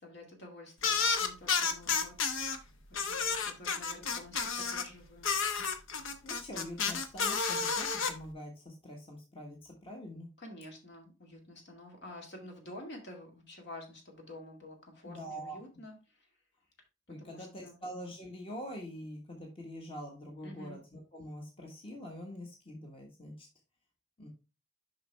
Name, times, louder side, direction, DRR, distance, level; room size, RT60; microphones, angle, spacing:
voice 1, 0.0-5.7 10.4-16.0 17.2-17.8 20.4-20.8, left 1 dB, 60° left, 2 dB, 2.2 m, -50 dB
sound 1, 0.8-2.6 2.9-4.9 5.2-8.1, left 5 dB, 90° left, 0.9 m, -31 dB
voice 2, 6.2-10.3 15.0-15.6 17.1-23.5 24.2-24.3, equal, 30° left, 1 dB, 1.3 m, -44 dB
7.1 x 5.5 x 3.4 m, 0.29 s
head